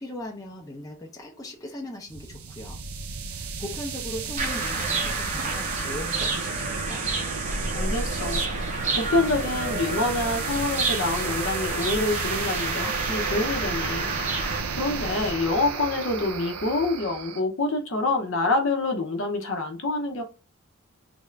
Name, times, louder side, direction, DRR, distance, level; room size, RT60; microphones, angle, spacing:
voice 1, 0.0-2.8 3.3-7.2, left 1 dB, 15° left, 0.6 m, -38 dB
sound 1, 2.1-17.4, right 5 dB, 85° right, 0.5 m, -33 dB
sound 2, 4.4-14.6, right 3 dB, 35° right, 0.7 m, -30 dB
voice 2, 7.7-8.4 9.0-20.2, left 2 dB, 60° left, 0.7 m, -27 dB
3.4 x 2.5 x 3.2 m
head